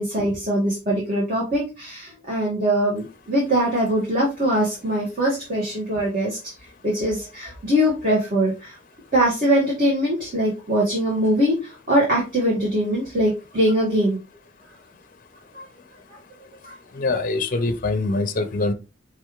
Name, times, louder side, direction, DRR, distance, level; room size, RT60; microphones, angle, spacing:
voice 1, 0.0-6.4 6.8-8.7 9.1-14.2 15.5-15.6 16.6-16.7, equal, 45° right, 1.5 m, -22 dB
voice 2, 16.9-18.7, left 3 dB, 45° left, 0.5 m, -23 dB
4.9 x 3.3 x 3.0 m
head